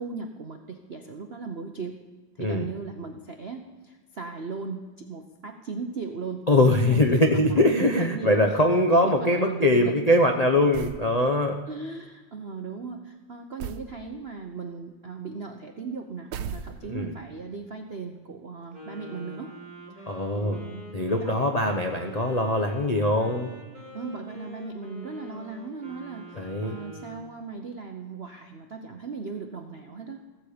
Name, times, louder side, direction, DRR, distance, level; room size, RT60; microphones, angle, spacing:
voice 1, 0.0-2.0 2.3-6.4 6.8-8.6 8.9-10.2 11.7-19.5 19.9-20.9 21.2-21.4 23.9-30.2, right 5 dB, 65° right, 4 dB, 0.6 m, -37 dB
voice 2, 6.5-11.5 16.8-17.1 20.1-20.6 20.9-23.5 26.4-26.8, left 1 dB, 80° left, 1 dB, 0.3 m, -22 dB
sound 1, 10.7-11.1 13.6-13.9 16.3-17.1, right 7 dB, 90° right, 1.6 m, -36 dB
Wind instrument woodwind instrument, 18.7-27.3, equal, 25° right, 3.4 m, -45 dB
15.0 x 15.0 x 5.0 m, 1.3 s
omnidirectional pair, 2.3 m